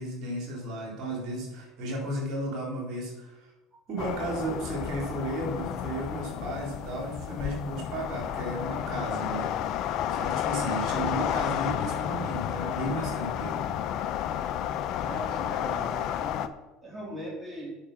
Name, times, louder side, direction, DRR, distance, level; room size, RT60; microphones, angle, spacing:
voice 1, 0.0-3.5 3.9-9.5 10.1-13.6, right 1 dB, 55° right, -1 dB, 3.8 m, -34 dB
sound 1, 4.0-16.5, left 10 dB, 60° left, 0.7 m, -31 dB
voice 2, 15.0-17.8, equal, 20° right, -3 dB, 3.7 m, -39 dB
8.6 x 6.4 x 6.0 m, 1.1 s
hypercardioid pair, 80°, 0 cm